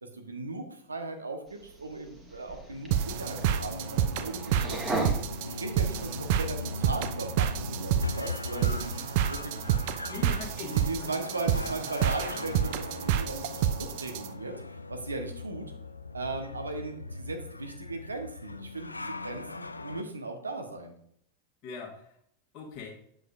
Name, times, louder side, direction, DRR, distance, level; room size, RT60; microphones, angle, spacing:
voice 1, 0.0-4.8 5.5-8.9 9.3-9.6 10.0-10.1 10.7-15.7 16.1-21.0, right 2 dB, 75° right, 5 dB, 1.1 m, -38 dB
sound 1, 1.5-6.4, right 2 dB, 15° right, 1.5 m, -38 dB
sound 2, 2.7-20.0, left 3 dB, 80° left, 0.4 m, -40 dB
sound 3, 2.9-14.3, right 10 dB, 50° right, 0.5 m, -29 dB
voice 2, 9.8-11.1 21.6-22.1 22.5-23.0, left 6 dB, 40° left, -1 dB, 1.6 m, -42 dB
7.8 x 7.7 x 2.6 m, 0.67 s
figure-of-eight pair, 90°, 0 cm